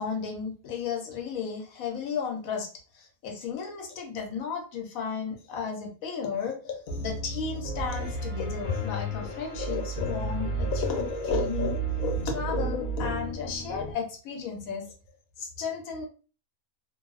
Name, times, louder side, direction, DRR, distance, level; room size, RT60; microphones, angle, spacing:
voice 1, 0.0-2.7 2.9-14.9 15.4-16.0, left 6 dB, 75° left, 2 dB, 1.0 m, -33 dB
Piano, 6.9-13.9, right 2 dB, 50° left, 0.5 m, -32 dB
2.6 x 2.0 x 2.3 m, 0.37 s
omnidirectional pair, 1.5 m